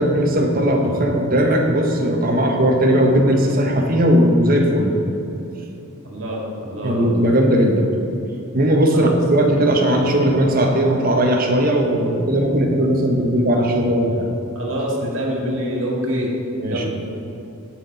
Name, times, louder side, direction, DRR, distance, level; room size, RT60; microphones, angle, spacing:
voice 1, 0.0-4.9 6.8-7.8 8.5-14.3 16.6-16.9, equal, 40° right, 1 dB, 1.2 m, -17 dB
voice 2, 6.0-7.1 8.9-9.2 14.5-16.3 16.7-16.9, equal, 60° right, -2 dB, 2.2 m, -25 dB
16.5 x 6.1 x 4.1 m, 2.9 s
head